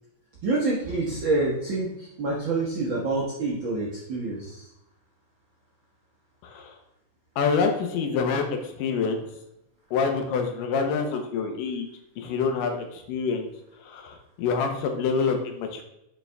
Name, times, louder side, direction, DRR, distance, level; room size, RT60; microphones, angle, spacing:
voice 1, 0.4-4.7, right 3 dB, 75° right, -3 dB, 1.1 m, -27 dB
voice 2, 6.4-6.7 7.4-9.2 9.9-11.9 12.2-13.5 13.8-15.8, left 5 dB, 80° left, 5 dB, 2.5 m, -26 dB
6.6 x 6.0 x 3.4 m, 0.84 s
omnidirectional pair, 3.9 m